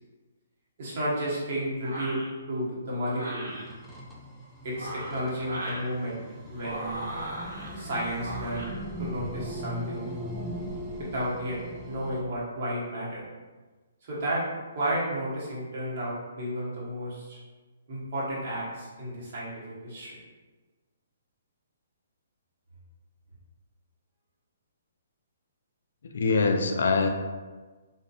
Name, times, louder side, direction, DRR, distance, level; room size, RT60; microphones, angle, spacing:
voice 1, 0.8-2.2 2.5-3.5 4.6-6.2 6.5-7.0 7.7-8.7 9.0-10.1 11.0-11.6 11.8-13.2 14.0-14.4 14.7-17.4 17.9-20.1, right 1 dB, 55° right, -7 dB, 1.1 m, -32 dB
sound 1, 1.8-2.3 3.1-3.6 4.6-5.9 6.6-7.7 8.2-8.7, right 1 dB, 85° right, 0.8 m, -37 dB
sound 2, 3.5-12.2, equal, ahead, 0.4 m, -39 dB
voice 2, 26.0-27.1, left 4 dB, 70° left, 4 dB, 0.3 m, -24 dB
2.6 x 2.5 x 2.4 m, 1.3 s
hypercardioid pair, 135°, 0 cm